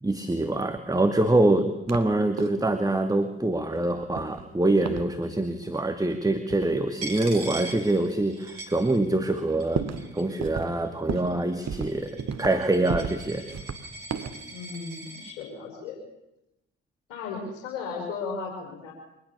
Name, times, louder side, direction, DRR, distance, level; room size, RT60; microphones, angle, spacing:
voice 1, 0.0-9.9 10.1-13.5, right 2 dB, 10° right, 7 dB, 2.2 m, -25 dB
sound 1, 1.9-2.1 2.4-2.7 4.2-4.5 4.9-5.1 6.5-6.6 7.5-7.6 8.2-8.3 8.8-8.9 9.1-10.1 10.4-10.7 11.1-11.4 11.7-12.6 12.9-13.2 13.5-14.4, right 6 dB, 45° right, 2.0 m, -33 dB
Coin (dropping), 7.0-9.3 9.6-10.4 11.1-15.3, right 2 dB, 85° right, 3.7 m, -41 dB
voice 2, 14.5-16.0 17.1-18.9, left 5 dB, 75° left, 1 dB, 5.5 m, -35 dB
24.5 x 19.5 x 7.0 m, 0.90 s
hypercardioid pair, 45°, 36 cm